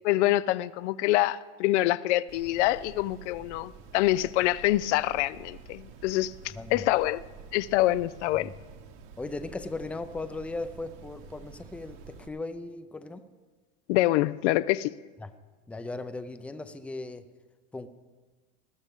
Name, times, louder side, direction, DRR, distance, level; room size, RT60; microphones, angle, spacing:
voice 1, 0.0-6.3 6.7-7.2 7.5-8.5 13.9-14.9, left 16 dB, 85° left, 0.5 m, -25 dB
sound 1, 2.3-12.3, right 5 dB, 70° right, 1.5 m, -49 dB
voice 2, 6.6-6.9 8.4-8.5 9.2-13.3 15.2-15.3 15.7-17.3 17.7-17.9, left 2 dB, 5° left, 0.5 m, -37 dB
20.5 x 13.0 x 3.6 m
supercardioid pair, 130°, 34 cm